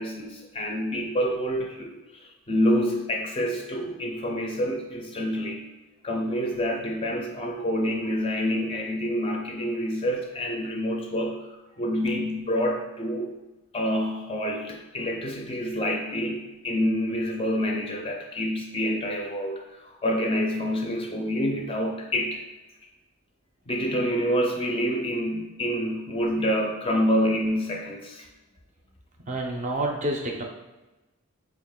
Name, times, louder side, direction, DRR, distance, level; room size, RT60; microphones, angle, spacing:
voice 1, 0.0-5.7 6.0-13.3 13.7-19.6 20.0-22.4 23.7-28.3, equal, 25° left, 1 dB, 0.4 m, -27 dB
voice 2, 29.3-30.4, right 1 dB, 35° right, 1 dB, 0.4 m, -28 dB
3.9 x 2.4 x 3.6 m, 1.1 s
head